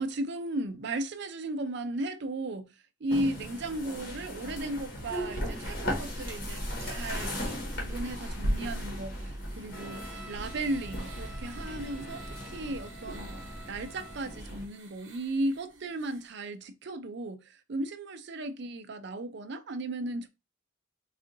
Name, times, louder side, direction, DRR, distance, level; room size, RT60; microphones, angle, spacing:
voice 1, 0.0-2.7 3.0-13.4 13.7-20.3, right 1 dB, 60° right, 0.5 m, -35 dB
sound 1, 3.1-14.6, equal, 50° left, 1.4 m, -36 dB
sound 2, 9.1-16.4, right 4 dB, 85° right, 0.9 m, -54 dB
Trumpet, 9.7-14.5, right 2 dB, 5° right, 0.5 m, -50 dB
3.6 x 2.4 x 3.9 m
head